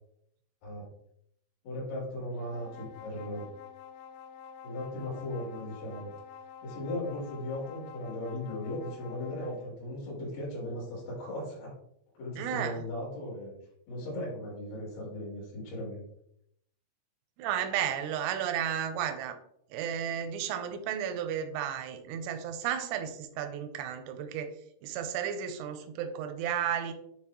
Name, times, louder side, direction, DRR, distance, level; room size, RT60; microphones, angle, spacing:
voice 1, 1.6-3.5 4.6-6.1 6.6-11.7 12.2-13.5 13.9-16.1, left 1 dB, 70° left, -5 dB, 4.9 m, -37 dB
sound 1, 2.3-9.7, left 8 dB, 85° left, 2.4 m, -49 dB
voice 2, 12.4-12.8 17.4-19.4 19.7-24.5 24.8-26.9, right 9 dB, 85° right, 8 dB, 2.4 m, -33 dB
9.5 x 3.8 x 2.9 m, 0.73 s
omnidirectional pair, 5.5 m